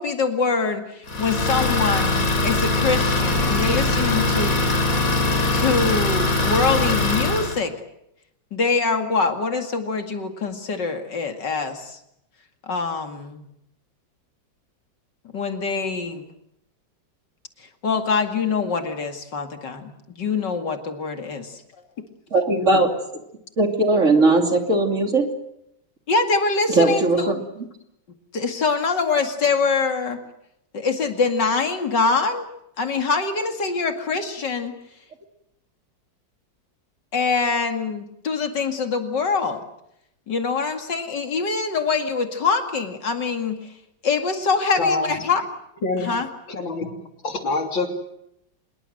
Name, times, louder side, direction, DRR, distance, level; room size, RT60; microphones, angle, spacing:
voice 1, 0.0-4.6 5.1-7.7 8.5-12.0 12.6-13.4 15.3-16.2 17.6-19.9 20.2-21.6 26.1-27.4 28.3-30.2 30.7-32.5 32.8-34.7 37.1-39.6 40.3-43.7 44.0-45.4 46.0-46.3 47.0-47.1, left 4 dB, 65° left, 6 dB, 2.9 m, -24 dB
Idling, 1.1-7.6, left 2 dB, 45° left, 4.2 m, -21 dB
voice 2, 22.3-22.9 23.6-25.3 26.7-27.4, right 2 dB, 40° right, 5 dB, 3.2 m, -18 dB
voice 3, 44.8-45.1 45.8-46.1 46.5-46.9 47.2-47.9, left 3 dB, 80° left, 5 dB, 4.0 m, -24 dB
26.0 x 22.0 x 7.8 m, 0.79 s
omnidirectional pair, 2.1 m